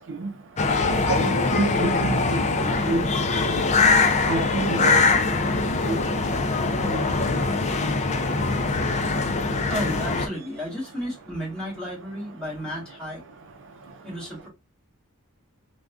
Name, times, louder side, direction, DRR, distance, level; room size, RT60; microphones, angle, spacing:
sound 1, 0.6-10.3, left 3 dB, 30° left, 0.4 m, -22 dB
voice 1, 1.1-2.2 2.9-3.0 4.3-5.0 5.9-6.0, right 3 dB, 60° right, 0.5 m, -26 dB
voice 2, 9.5-13.2 14.0-14.5, equal, 5° left, 1.7 m, -33 dB
3.6 x 2.2 x 2.4 m
head